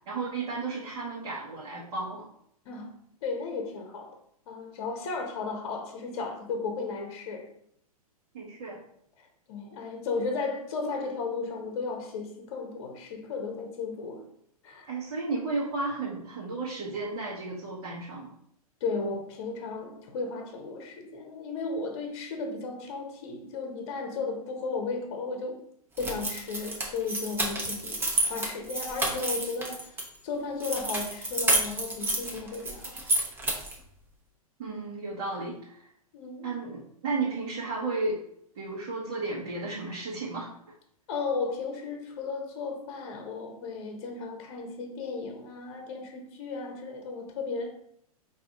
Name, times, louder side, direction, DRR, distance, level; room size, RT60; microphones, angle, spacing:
voice 1, 0.1-2.3 8.3-8.8 14.9-18.3 34.6-35.9 36.4-38.2 38.5-40.5, right 3 dB, 50° right, 1.3 m, -33 dB
voice 2, 2.7-4.2 4.5-7.5 9.2-14.3 14.6-14.9 18.8-25.6 26.0-33.0 36.1-36.5 41.1-47.8, left 4 dB, 45° left, 0.9 m, -35 dB
sound 1, 26.0-30.0 30.6-33.8, right 2 dB, 10° right, 0.8 m, -30 dB
4.9 x 2.8 x 3.6 m
figure-of-eight pair, 105°, 19 cm